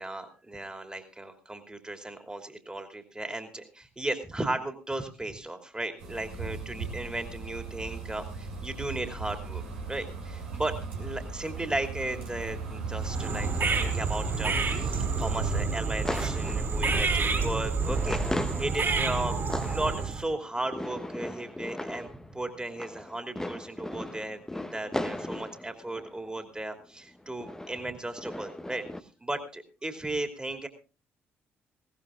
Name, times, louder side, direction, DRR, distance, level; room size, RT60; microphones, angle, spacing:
voice 1, 0.0-18.2 18.6-19.4 19.6-28.8 29.2-30.7, right 2 dB, 15° right, 6 dB, 3.0 m, -35 dB
sound 1, 6.0-15.7, right 4 dB, 75° right, 2.8 m, -36 dB
sound 2, 13.0-20.3, right 4 dB, 35° right, 4.1 m, -29 dB
sound 3, 15.0-26.5 27.1-29.0, left 1 dB, 5° left, 1.2 m, -38 dB
20.0 x 17.5 x 2.5 m, 0.33 s
figure-of-eight pair, 45°, 7 cm